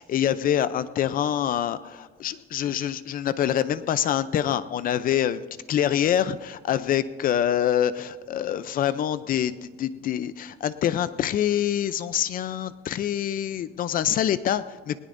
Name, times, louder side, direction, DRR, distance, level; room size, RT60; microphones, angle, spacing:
voice 1, 0.0-15.0, left 10 dB, 45° left, 14 dB, 0.5 m, -25 dB
19.0 x 19.0 x 2.6 m, 1.4 s
cardioid pair, 150°, 20 cm